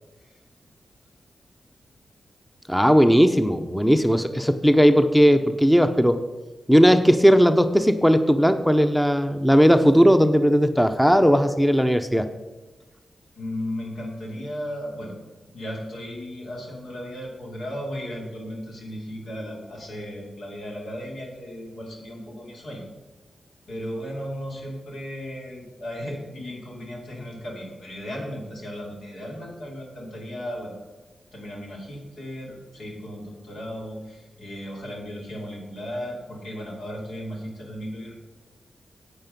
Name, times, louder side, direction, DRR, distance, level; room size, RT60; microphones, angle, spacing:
voice 1, 2.7-6.2 6.7-12.3, equal, 5° left, 9 dB, 0.8 m, -17 dB
voice 2, 13.4-22.8 23.7-30.8 31.3-38.1, equal, 80° left, -1 dB, 2.8 m, -35 dB
8.9 x 8.3 x 5.4 m, 1.2 s
supercardioid pair, 40°, 0 cm